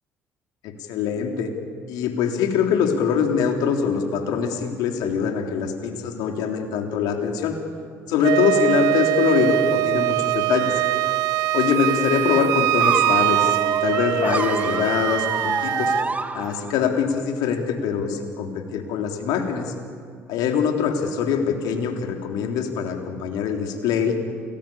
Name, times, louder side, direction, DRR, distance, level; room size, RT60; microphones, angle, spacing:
voice 1, 0.6-1.5 1.9-7.6 8.1-10.7 11.5-15.9 16.3-19.7 20.3-24.2, left 7 dB, 70° left, 4 dB, 3.5 m, -23 dB
Wind instrument woodwind instrument, 8.2-16.1, right 17 dB, 70° right, 0.6 m, -23 dB
sound 1, 12.8-16.9, right 3 dB, 20° right, 1.8 m, -27 dB
29.0 x 20.0 x 8.6 m, 2.4 s
hypercardioid pair, 55°, 7 cm